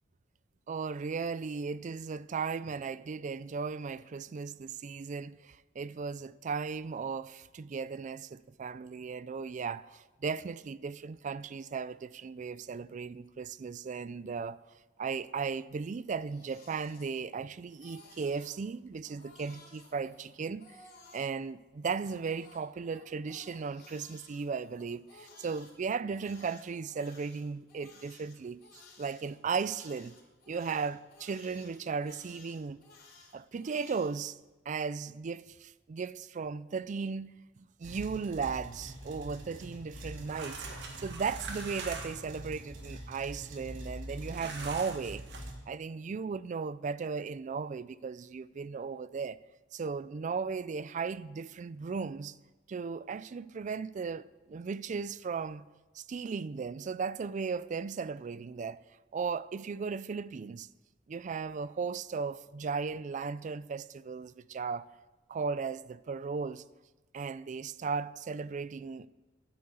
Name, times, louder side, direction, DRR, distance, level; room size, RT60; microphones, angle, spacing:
voice 1, 0.7-14.6 15.0-20.7 21.1-30.2 30.5-32.8 33.3-34.4 34.7-37.4 37.8-40.6 41.0-45.2 45.7-49.4 49.7-52.3 52.7-55.7 56.0-58.8 59.1-60.7 61.1-64.9 65.3-66.6 67.1-69.1, right 5 dB, 40° right, 0.4 m, -36 dB
Crying sobbing, 16.0-17.4 17.7-18.6 19.0-21.3 21.9-25.7 26.1-34.1, left 3 dB, 55° left, 3.5 m, -57 dB
sound 1, 37.8-45.5, right 1 dB, 85° right, 2.5 m, -45 dB
sound 2, 40.1-42.3 44.3-45.4, right 4 dB, 65° right, 1.9 m, -43 dB
10.0 x 9.6 x 7.0 m
head